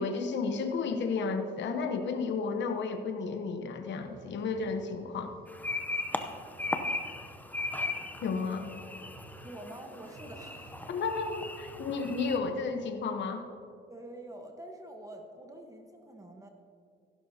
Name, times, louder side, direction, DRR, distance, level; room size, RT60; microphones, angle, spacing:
voice 1, 0.0-5.3 8.2-8.7 10.9-13.4, left 4 dB, 65° left, 5 dB, 1.0 m, -32 dB
sound 1, 3.9-12.6, right 2 dB, 50° right, 1.4 m, -53 dB
sound 2, 5.5-12.4, left 2 dB, 10° left, 0.7 m, -37 dB
voice 2, 9.4-10.9 13.9-16.5, right 1 dB, 15° right, 3 dB, 1.2 m, -46 dB
15.5 x 12.0 x 2.8 m, 2.3 s
cardioid pair, 90°, 20 cm